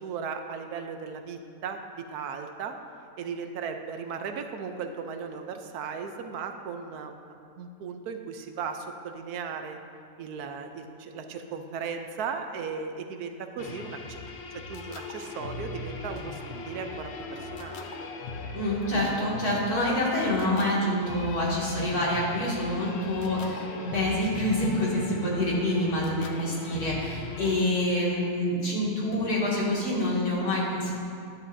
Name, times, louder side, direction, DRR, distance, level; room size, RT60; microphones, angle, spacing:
voice 1, 0.0-2.8 3.2-9.8 10.2-14.2 14.5-16.4 16.7-17.9, right 6 dB, 90° right, 6 dB, 1.2 m, -36 dB
sound 1, 13.6-27.6, left 3 dB, 55° left, 0.9 m, -39 dB
voice 2, 18.5-30.9, left 1 dB, 85° left, -6 dB, 2.8 m, -27 dB
13.0 x 10.0 x 2.7 m, 2.3 s
omnidirectional pair, 1.6 m